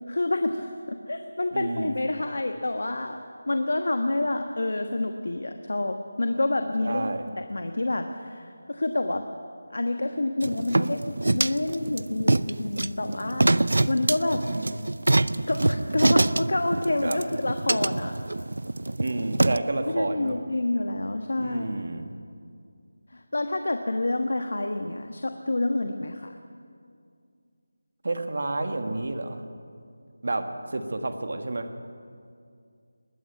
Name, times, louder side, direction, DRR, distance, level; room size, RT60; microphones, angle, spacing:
voice 1, 0.1-7.1 7.4-9.2 9.7-13.4 13.9-14.4 15.5-18.2 19.8-21.8 23.1-26.4, left 2 dB, 65° left, 6 dB, 1.3 m, -28 dB
voice 2, 1.5-2.0 6.8-7.3 14.4-14.8 17.0-17.2 19.0-20.4 21.4-22.1 28.0-29.4 30.2-31.7, right 2 dB, 45° right, 7 dB, 1.6 m, -30 dB
sound 1, 10.4-19.6, right 2 dB, 70° right, 0.5 m, -25 dB
20.5 x 14.5 x 9.4 m, 2.3 s
figure-of-eight pair, 180°, 0 cm